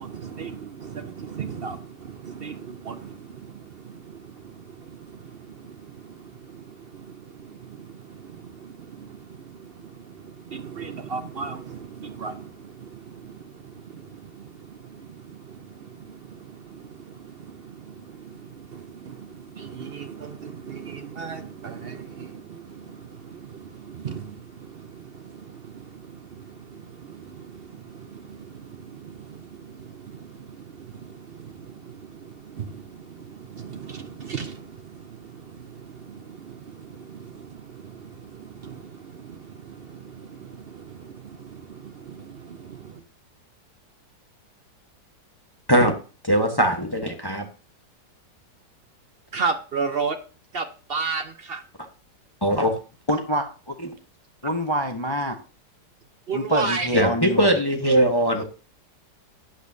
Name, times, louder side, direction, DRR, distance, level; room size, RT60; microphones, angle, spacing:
voice 1, 0.0-43.0 49.3-50.2 50.5-51.6 56.3-57.1 58.3-58.4, right 5 dB, 60° right, 0.6 m, -36 dB
voice 2, 46.3-47.4 52.4-52.7 56.9-58.4, equal, 15° left, 1.0 m, -20 dB
voice 3, 53.1-53.7 54.4-55.4 56.3-57.5, equal, 35° left, 0.4 m, -26 dB
11.5 x 8.4 x 2.7 m
omnidirectional pair, 1.9 m